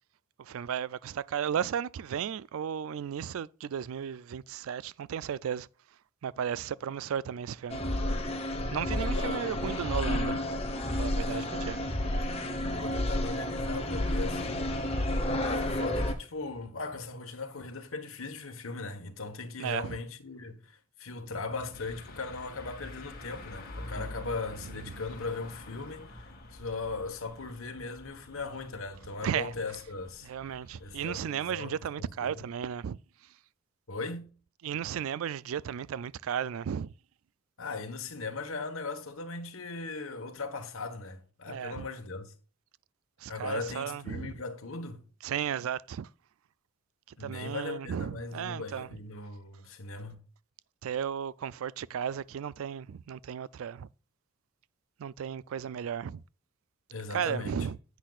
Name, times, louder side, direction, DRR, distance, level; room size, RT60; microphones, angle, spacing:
voice 1, 0.4-5.7 6.2-7.8 8.7-10.4 10.9-11.8 19.6-20.0 24.9-25.0 29.2-29.5 30.2-33.0 34.6-36.9 41.5-41.8 43.2-44.3 45.2-46.1 47.2-48.9 50.8-53.9 55.0-56.2 57.1-57.8, right 8 dB, 70° right, 0.3 m, -34 dB
sound 1, 7.7-16.1, left 1 dB, 30° left, 1.2 m, -31 dB
voice 2, 8.9-9.9 11.2-11.5 12.7-14.6 15.4-30.3 30.8-32.5 33.9-34.3 37.6-42.3 43.3-45.0 47.2-50.2 56.9-57.7, left 3 dB, 70° left, 1.3 m, -39 dB
sound 2, 21.7-31.2, left 1 dB, 45° left, 1.9 m, -47 dB
10.0 x 8.3 x 2.4 m
head